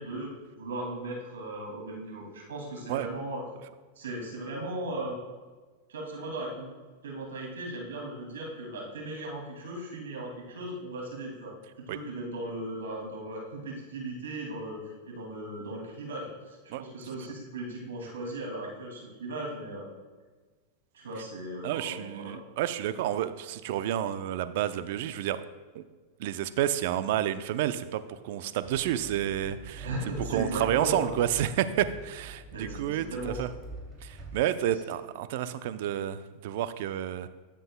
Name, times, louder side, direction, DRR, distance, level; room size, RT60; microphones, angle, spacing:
voice 1, 0.0-3.4 4.0-5.2 5.9-6.7 7.0-11.5 11.9-19.9 20.9-22.3 29.8-31.1 32.5-33.4, right 1 dB, 85° right, -1 dB, 2.4 m, -37 dB
voice 2, 21.6-25.4 25.7-25.8 26.2-29.9 30.3-33.5 34.0-37.3, right 11 dB, 65° right, 12 dB, 0.5 m, -30 dB
sound 1, 28.6-34.4, right 3 dB, 5° right, 2.6 m, -44 dB
12.5 x 7.7 x 2.2 m, 1.4 s
hypercardioid pair, 115°, 0 cm